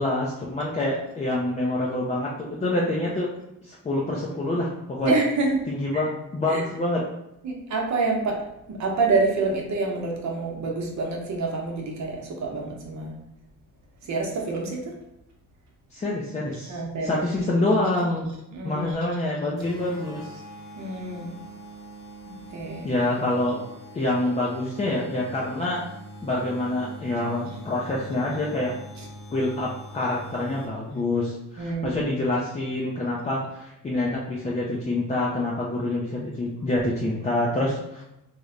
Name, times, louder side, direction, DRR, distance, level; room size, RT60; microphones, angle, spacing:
voice 1, 0.0-3.3 3.6-5.1 5.7-7.1 15.9-18.3 18.6-20.4 22.8-23.6 23.9-25.8 26.2-28.8 29.3-38.0, left 2 dB, 20° left, -4 dB, 0.4 m, -26 dB
voice 2, 5.0-5.6 5.9-6.0 6.5-6.6 7.4-8.4 8.7-13.1 14.1-14.9 16.6-17.2 18.5-19.0 20.8-21.4 22.3-22.9 31.6-32.0, right 3 dB, 55° right, 0 dB, 0.8 m, -27 dB
sound 1, 19.6-31.0, right 1 dB, 10° right, 1.3 m, -43 dB
3.2 x 2.1 x 3.7 m, 0.87 s
cardioid pair, 135°, 34 cm